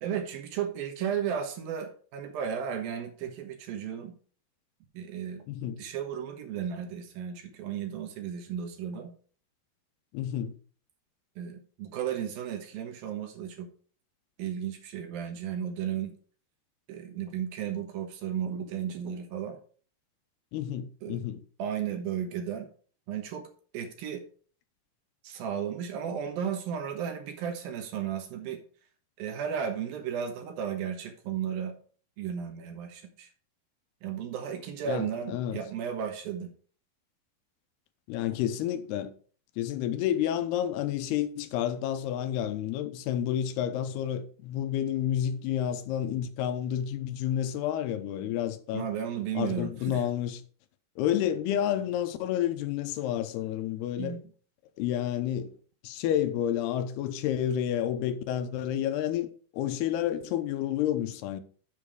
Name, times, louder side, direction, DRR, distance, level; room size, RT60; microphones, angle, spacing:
voice 1, 0.0-4.1 4.9-9.1 11.4-13.7 14.4-16.1 16.9-19.6 21.0-21.2 21.6-22.7 23.1-23.5 23.7-24.2 25.2-28.6 29.2-31.8 32.2-33.3 34.0-36.5 48.7-50.0 54.0-54.2, right 8 dB, 75° right, 2.8 m, -34 dB
voice 2, 5.5-5.8 10.1-10.6 20.5-21.4 34.9-35.6 38.1-39.1 39.6-48.9 49.3-50.4 51.0-54.2 54.8-55.5 55.8-61.4, left 10 dB, 80° left, 2.8 m, -30 dB
7.6 x 7.0 x 4.8 m
omnidirectional pair, 4.6 m